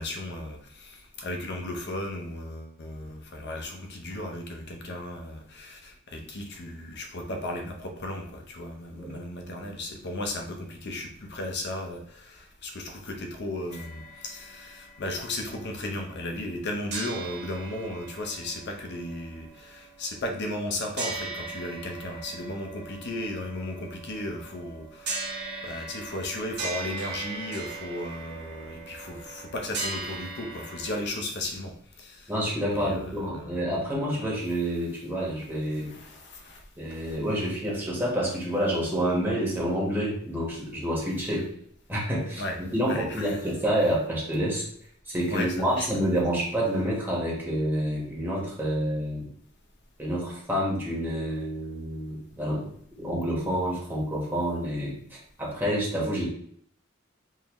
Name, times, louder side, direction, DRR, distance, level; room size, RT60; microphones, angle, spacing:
voice 1, 0.0-32.3 32.7-33.6 34.2-34.3 35.9-36.6 37.1-37.2 42.4-42.6 42.9-43.4 45.3-45.9, left 1 dB, 55° left, 3 dB, 0.7 m, -35 dB
sound 1, 13.7-16.6 16.9-31.1, right 3 dB, 55° right, 1.2 m, -39 dB
voice 2, 32.3-35.9 36.8-41.5 41.9-44.6 45.1-49.3 50.0-52.7 53.0-56.2, equal, 10° right, -5 dB, 1.2 m, -28 dB
3.8 x 2.7 x 3.0 m, 0.63 s
head